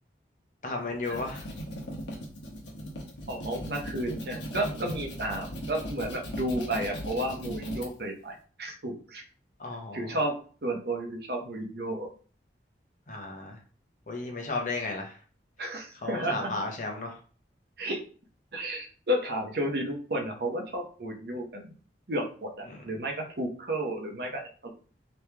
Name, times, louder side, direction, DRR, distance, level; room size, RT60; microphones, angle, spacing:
voice 1, 0.6-1.5 9.6-10.2 13.1-13.6 14.1-15.2 16.0-17.2 22.7-22.8, left 3 dB, 45° left, 1 dB, 0.9 m, -34 dB
sound 1, 0.8-7.9, equal, 80° left, 1.0 m, -38 dB
voice 2, 3.3-9.2 9.9-12.1 15.6-16.5 17.8-18.0 18.5-21.7 22.1-24.7, right 1 dB, 60° right, 2 dB, 0.9 m, -32 dB
3.2 x 3.0 x 3.4 m, 0.40 s
head